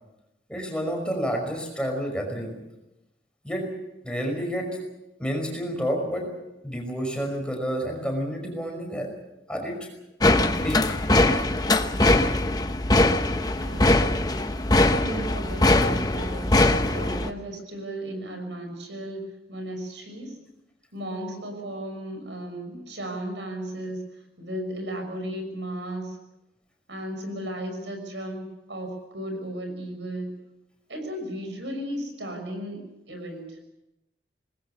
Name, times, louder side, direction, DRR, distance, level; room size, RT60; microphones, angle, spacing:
voice 1, 0.5-2.6 3.4-3.7 4.0-4.8 5.2-6.3 6.6-9.1 9.5-9.8 10.6-11.0, equal, 5° left, 2 dB, 5.5 m, -29 dB
sound 1, 10.2-17.3, left 2 dB, 20° left, 1.0 m, -21 dB
voice 2, 13.6-14.2 14.9-20.4 20.9-24.0 24.4-26.2 26.9-30.3 30.9-33.6, right 1 dB, 85° right, 5 dB, 6.2 m, -35 dB
26.0 x 20.0 x 7.1 m, 0.94 s
head